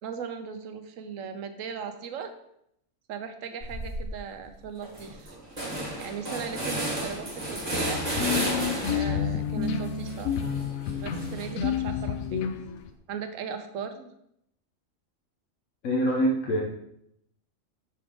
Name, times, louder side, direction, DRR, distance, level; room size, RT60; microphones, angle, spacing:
voice 1, 0.0-2.3 3.1-5.4 6.0-8.0 8.9-10.3 10.9-12.5 13.1-14.1, right 6 dB, 75° right, 7 dB, 1.0 m, -38 dB
sound 1, 3.6-4.1 4.5-4.6 4.8-9.2 9.6-11.7, right 1 dB, 30° right, 1.9 m, -33 dB
sound 2, 7.7-12.9, left 7 dB, 90° left, 1.0 m, -29 dB
voice 2, 15.8-16.6, equal, 70° left, 0 dB, 1.2 m, -24 dB
5.9 x 4.8 x 3.6 m, 0.75 s
omnidirectional pair, 1.4 m